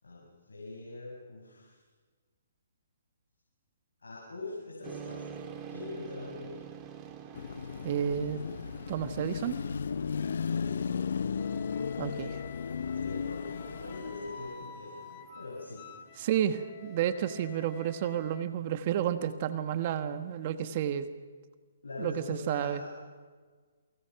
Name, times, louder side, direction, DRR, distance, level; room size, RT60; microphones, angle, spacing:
voice 1, 0.0-1.8 4.0-5.3 5.7-6.7 10.4-10.7 12.9-15.8 21.8-23.1, left 2 dB, 90° left, -2 dB, 5.7 m, -43 dB
sound 1, 4.8-20.3, right 7 dB, 25° right, 2.9 m, -50 dB
Car passing by / Traffic noise roadway noise / Engine, 7.3-14.7, left 6 dB, 70° left, 0.7 m, -35 dB
voice 2, 7.8-8.4 8.9-9.6 12.0-12.4 16.2-21.1 22.0-22.8, right 10 dB, 40° right, 10 dB, 1.3 m, -31 dB
Wind instrument woodwind instrument, 11.3-18.4, left 6 dB, 40° left, 2.1 m, -49 dB
28.0 x 24.5 x 5.8 m, 1.5 s
hypercardioid pair, 145°, 0 cm